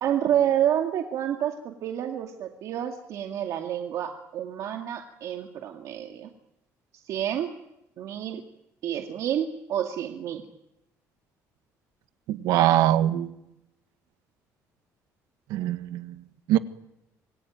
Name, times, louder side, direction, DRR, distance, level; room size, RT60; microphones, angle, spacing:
voice 1, 0.0-6.3 7.0-7.5 8.0-8.4 8.8-10.4, right 10 dB, 60° right, 3 dB, 2.3 m, -28 dB
voice 2, 12.3-13.3 15.5-16.2 16.5-16.6, right 13 dB, 85° right, 10 dB, 1.6 m, -22 dB
27.0 x 22.5 x 9.3 m, 0.86 s
cardioid pair, 140°, 6 cm